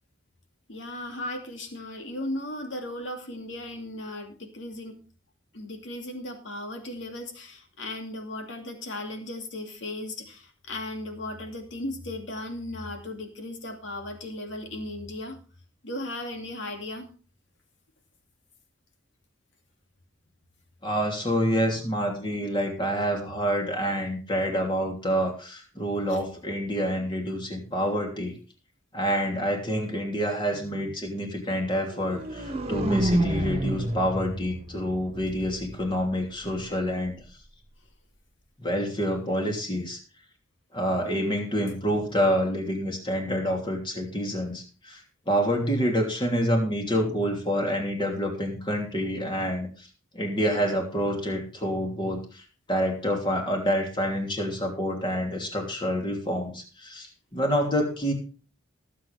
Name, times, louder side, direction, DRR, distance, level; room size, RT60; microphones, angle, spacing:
voice 1, 0.7-5.0 5.5-15.4 15.8-17.1 26.1-26.2 30.5-30.9 41.9-42.0, left 1 dB, 65° left, 4 dB, 2.5 m, -36 dB
voice 2, 20.8-28.4 28.9-37.2 38.6-40.0 40.7-45.0 45.3-49.9 50.1-58.1, equal, 25° left, 2 dB, 2.9 m, -27 dB
sound 1, 31.9-35.9, right 1 dB, 30° right, 1.7 m, -29 dB
19.5 x 7.7 x 3.4 m, 0.36 s
head